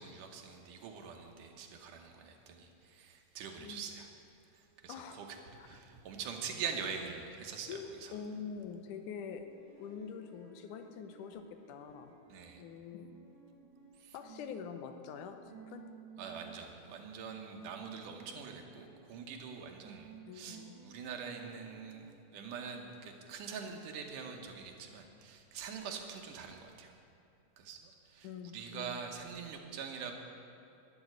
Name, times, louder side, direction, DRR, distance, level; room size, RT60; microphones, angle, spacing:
voice 1, 0.0-4.1 4.5-5.4 5.6-8.1 12.3-12.6 14.0-14.1 16.2-26.9 27.6-28.3 28.5-30.1, right 6 dB, 80° right, 3 dB, 2.6 m, -44 dB
sound 1, 4.6-8.5 9.4-16.6 17.5-19.5 19.7-22.3, right 6 dB, 60° right, 3.9 m, -57 dB
voice 2, 4.9-5.2 5.6-5.8 7.7-9.5 9.8-12.2 12.6-13.1 14.1-15.9 20.3-20.8 28.2-29.0, left 6 dB, 80° left, 7 dB, 2.3 m, -45 dB
12.0 x 6.7 x 9.5 m, 2.6 s
omnidirectional pair, 3.6 m